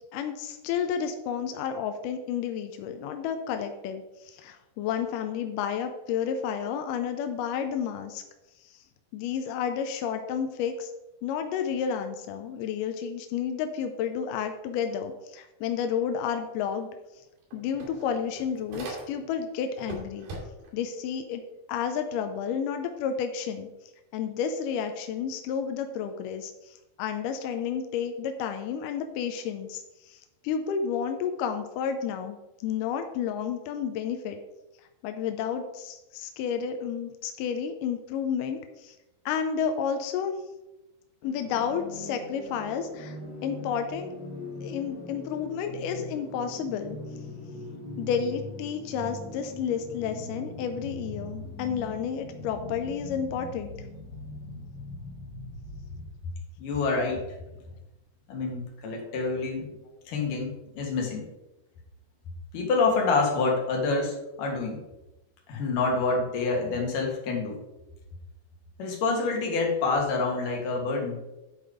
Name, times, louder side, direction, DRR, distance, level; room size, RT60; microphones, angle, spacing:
voice 1, 0.1-8.2 9.1-10.9 11.2-16.9 17.5-20.3 20.7-21.4 21.7-23.7 24.1-26.5 27.0-32.4 32.6-34.4 35.0-39.0 39.3-40.3 41.2-43.2 43.4-44.1 44.6-47.0 48.0-53.7, left 7 dB, 80° left, 6 dB, 1.9 m, -31 dB
sound 1, 16.8-16.9 17.2-19.4 19.8-20.8, right 1 dB, 75° right, 4.4 m, -40 dB
sound 2, 41.2-56.2, left 2 dB, 45° left, 1.4 m, -41 dB
voice 2, 56.6-57.2 58.3-59.7 60.1-61.2 62.5-64.8 65.5-67.6 68.8-71.2, left 3 dB, 65° left, 0 dB, 3.0 m, -27 dB
9.9 x 4.7 x 4.9 m, 0.98 s
omnidirectional pair, 4.4 m